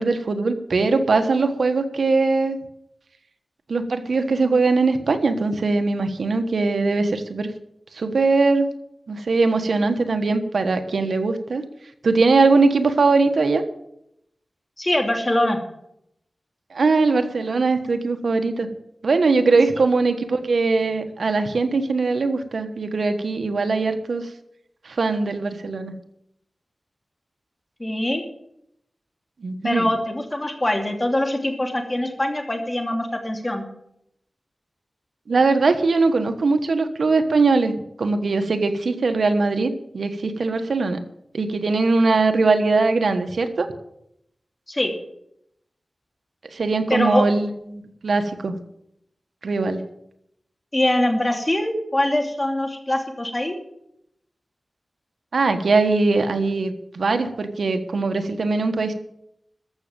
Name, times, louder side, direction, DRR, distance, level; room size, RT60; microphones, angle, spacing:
voice 1, 0.0-2.6 3.7-7.5 7.9-8.7 9.1-11.6 12.0-13.6 16.7-18.7 19.0-24.3 24.8-25.9 29.4-29.9 35.3-41.0 41.3-43.7 46.5-48.5 49.4-49.8 55.3-58.9, right 3 dB, 85° right, 7 dB, 1.3 m, -21 dB
voice 2, 14.8-15.6 27.8-28.2 29.6-33.6 44.7-44.9 46.9-47.3 50.7-53.6, left 1 dB, 25° left, 3 dB, 2.9 m, -23 dB
14.0 x 6.4 x 9.0 m, 0.77 s
wide cardioid pair, 60°, 0 cm